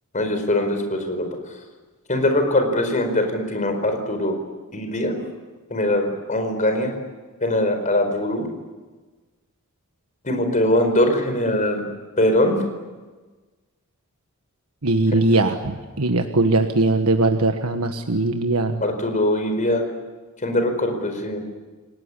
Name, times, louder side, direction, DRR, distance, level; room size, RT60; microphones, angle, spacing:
voice 1, 0.1-1.3 2.1-4.4 4.7-5.2 5.7-6.9 7.4-8.5 10.2-11.8 12.2-12.6 18.8-19.8 20.4-21.4, left 1 dB, 35° left, 6 dB, 4.7 m, -21 dB
voice 2, 14.8-18.8, right 2 dB, 90° right, 5 dB, 1.4 m, -20 dB
28.5 x 18.5 x 9.9 m, 1.3 s
head